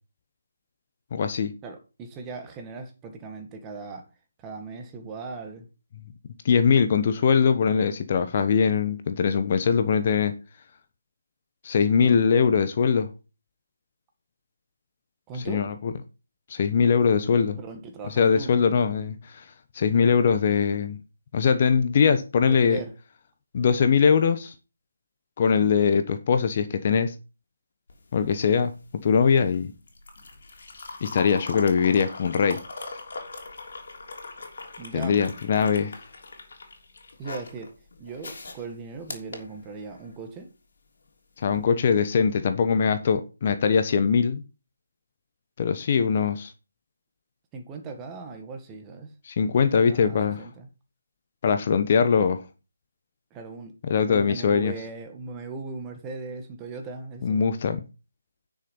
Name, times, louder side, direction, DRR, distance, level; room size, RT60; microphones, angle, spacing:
voice 1, 1.1-1.5 6.4-10.3 11.6-13.1 15.4-15.9 16.5-17.6 18.1-19.4 19.7-21.0 21.3-22.8 23.5-24.5 25.4-27.1 28.1-28.7 29.0-29.7 31.0-32.6 34.9-35.9 41.4-44.4 45.6-46.5 49.2-50.5 51.4-52.4 53.8-54.7 57.2-57.8, left 6 dB, 40° left, 1.1 m, -22 dB
voice 2, 1.6-4.0 4.4-5.7 12.0-12.2 15.3-15.7 17.6-18.5 22.4-22.9 34.8-35.2 37.2-37.7 38.0-40.5 47.5-49.1 49.4-50.7 53.3-53.7 54.1-57.4, right 4 dB, 15° right, 1.9 m, -38 dB
sound 1, 27.9-40.2 41.4-41.6, left 3 dB, 55° left, 3.4 m, -41 dB
9.9 x 6.6 x 5.6 m
figure-of-eight pair, 160°, 0 cm